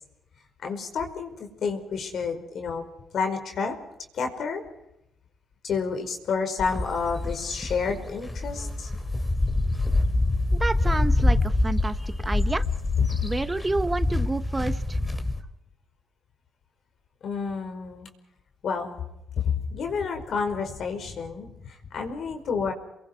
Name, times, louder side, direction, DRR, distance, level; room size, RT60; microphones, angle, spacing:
voice 1, 0.6-2.9 3.1-3.8 4.1-4.6 5.6-8.9 17.2-18.1 18.6-19.0 19.5-22.7, left 5 dB, 65° left, 5 dB, 5.1 m, -30 dB
sound 1, 6.6-15.4, left 2 dB, 20° left, 3.4 m, -26 dB
voice 2, 10.6-12.7 13.2-15.0, right 2 dB, 20° right, 11 dB, 1.2 m, -29 dB
29.0 x 22.5 x 4.7 m, 0.88 s
cardioid pair, 90°, 0 cm